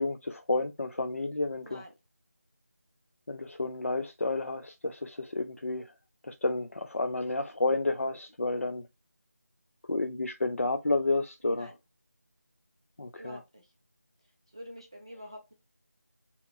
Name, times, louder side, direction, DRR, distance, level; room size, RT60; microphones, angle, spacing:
voice 1, 0.0-1.8 3.3-5.9 6.2-8.9 9.9-11.7 13.0-13.4, left 2 dB, 60° left, 0.4 m, -31 dB
voice 2, 1.6-1.9 11.4-11.8 13.2-13.7 14.2-15.5, equal, 20° right, 0.3 m, -47 dB
5.0 x 2.9 x 2.3 m
figure-of-eight pair, 165°, 8 cm